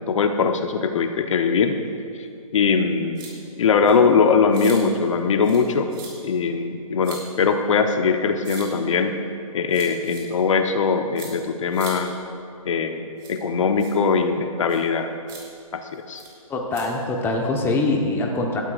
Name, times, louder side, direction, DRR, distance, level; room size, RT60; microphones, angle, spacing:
voice 1, 0.0-1.7 2.5-3.2 3.6-5.9 6.2-9.1 9.5-12.1 12.6-13.0 13.3-15.1 15.7-16.2, left 5 dB, 60° left, 6 dB, 1.0 m, -21 dB
sound 1, 3.1-3.3 3.8-3.9 4.5-4.8 5.4-5.6 5.9-6.1 7.0-7.2 8.4-8.6 9.7-10.2 11.2-11.3 11.7-11.9 13.2-13.4 13.8-13.9 14.7-14.8 15.3-15.4 16.1-16.3 16.7-16.8, right 6 dB, 40° right, 3.5 m, -39 dB
voice 2, 16.5-18.6, left 2 dB, 10° left, 1 dB, 1.1 m, -23 dB
19.0 x 12.0 x 2.5 m, 2.4 s
hypercardioid pair, 140°, 18 cm